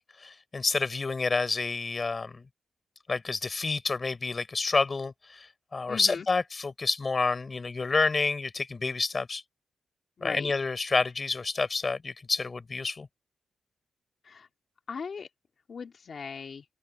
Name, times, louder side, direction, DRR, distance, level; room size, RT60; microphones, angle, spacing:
voice 1, 0.2-2.4 3.1-5.5 5.7-9.4 10.2-13.1, left 4 dB, 30° left, 4.2 m, -29 dB
voice 2, 5.9-6.3 10.2-10.5 14.2-14.5 14.9-15.3 15.7-16.7, left 5 dB, 45° left, 3.6 m, -38 dB
wide cardioid pair, 160°, 0 cm